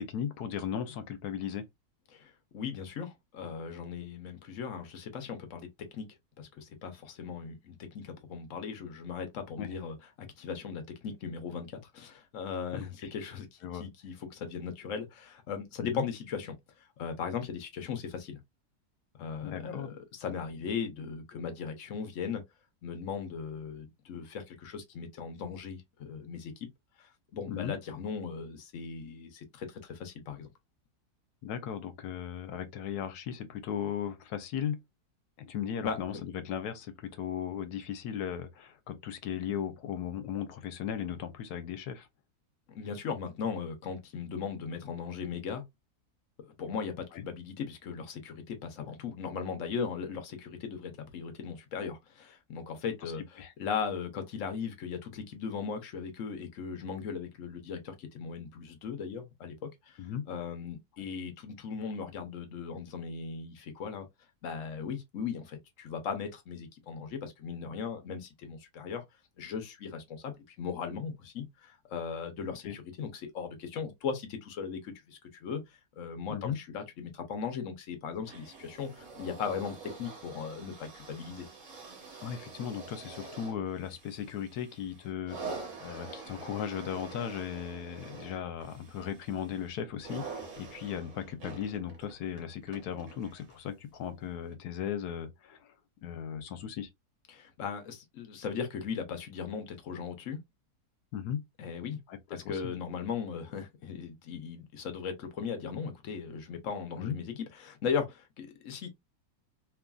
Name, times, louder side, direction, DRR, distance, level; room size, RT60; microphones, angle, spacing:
voice 1, 0.0-1.6 9.6-9.7 12.7-12.9 13.6-13.8 15.8-16.1 19.4-19.9 27.5-27.7 31.4-34.8 35.4-42.1 47.1-47.2 53.0-53.1 53.4-53.5 60.0-60.2 72.6-72.8 76.3-76.6 82.2-95.6 96.0-96.9 101.1-101.4 102.1-102.2 102.4-102.8 107.0-107.2, left 9 dB, 80° left, 1.2 m, -37 dB
voice 2, 2.1-5.7 5.9-6.1 6.4-16.5 17.0-18.4 19.2-22.4 22.8-26.7 27.0-30.5 35.8-36.2 42.7-45.6 46.4-64.1 64.4-69.0 69.4-75.6 76.0-81.5 97.3-100.4 101.6-102.0 102.3-108.9, left 6 dB, 60° left, 1.0 m, -38 dB
sound 1, 78.2-93.7 94.5-94.6, right 4 dB, 55° right, 1.3 m, -46 dB
3.0 x 2.5 x 2.3 m
omnidirectional pair, 1.7 m